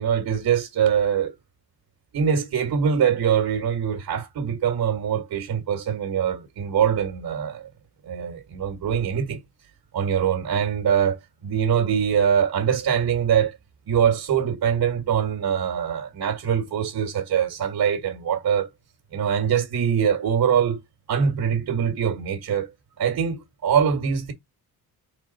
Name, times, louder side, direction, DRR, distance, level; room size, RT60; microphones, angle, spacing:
voice 1, 0.0-1.3 2.1-7.7 8.1-9.4 9.9-13.6 13.9-18.7 19.1-20.8 21.1-22.7 23.0-24.3, right 8 dB, 60° right, 1.8 m, -23 dB
5.3 x 4.4 x 4.1 m
cardioid pair, 130°, 39 cm